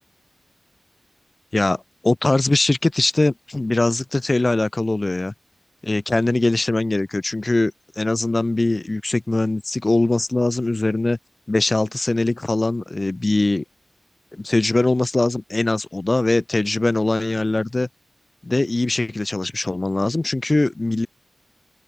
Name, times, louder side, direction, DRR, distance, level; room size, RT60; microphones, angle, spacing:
voice 1, 1.5-5.3 5.8-11.2 11.5-13.6 14.3-17.9 18.4-21.1, left 2 dB, 25° left, 6.2 m, -21 dB
open air
wide cardioid pair, 145°, 0 cm